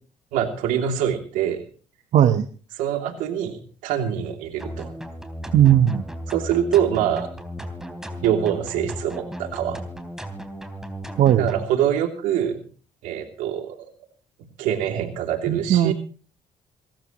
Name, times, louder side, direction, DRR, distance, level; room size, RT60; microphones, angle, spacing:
voice 1, 0.3-1.6 2.8-4.9 6.3-7.3 8.2-9.8 11.4-12.6 13.0-13.9 14.6-15.9, right 9 dB, 90° right, 4 dB, 3.0 m, -24 dB
voice 2, 2.1-2.4 5.5-6.0 11.2-11.5 15.5-15.9, right 11 dB, 65° right, 8 dB, 1.1 m, -17 dB
sound 1, 4.6-11.7, equal, 5° right, 3.5 m, -35 dB
27.0 x 14.0 x 3.0 m, 0.40 s
supercardioid pair, 75°, 13 cm